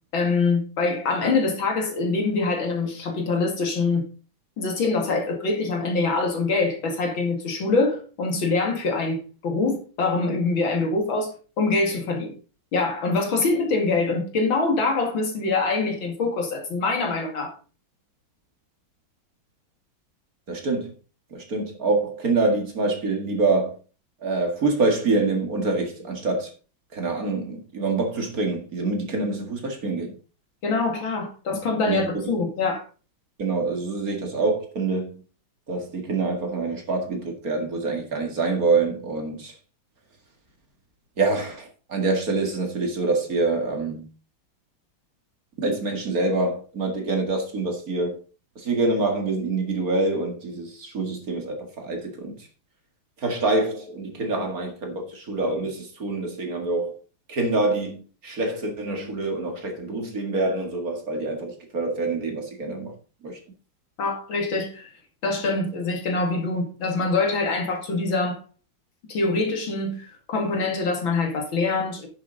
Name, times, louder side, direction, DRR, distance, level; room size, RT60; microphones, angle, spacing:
voice 1, 0.1-4.1 4.6-11.3 11.6-12.3 12.7-17.5 30.6-32.8 64.0-64.9 65.2-68.4 69.1-72.1, left 3 dB, 75° left, 2.9 m, -24 dB
voice 2, 20.5-20.9 21.3-23.8 24.2-26.5 26.9-30.1 31.9-32.0 33.4-35.2 35.7-39.5 41.2-44.1 45.6-48.2 48.6-52.4 53.2-56.9 57.3-62.9 63.2-63.4, right 3 dB, 45° right, 2.4 m, -26 dB
9.8 x 7.8 x 4.0 m
omnidirectional pair, 2.2 m